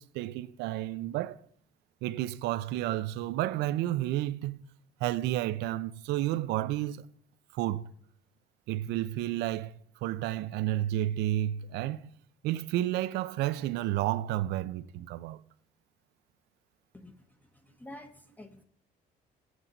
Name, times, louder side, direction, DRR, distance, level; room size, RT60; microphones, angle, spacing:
voice 1, 0.0-1.4 2.0-4.6 5.0-7.0 7.5-7.9 8.7-9.7 10.0-12.1 12.4-15.4, right 14 dB, 90° right, 0.5 m, -31 dB
voice 2, 17.5-18.6, left 1 dB, 10° left, 0.9 m, -48 dB
16.5 x 7.9 x 4.0 m
cardioid pair, 110°, 17 cm